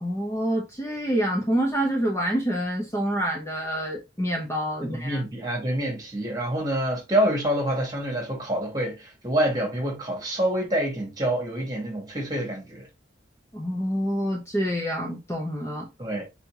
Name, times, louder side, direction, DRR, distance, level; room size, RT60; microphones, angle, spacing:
voice 1, 0.0-5.2 13.5-15.9, equal, 15° left, 0.9 m, -27 dB
voice 2, 4.8-12.9 16.0-16.2, right 1 dB, 20° right, 1.9 m, -27 dB
4.3 x 4.1 x 2.9 m
head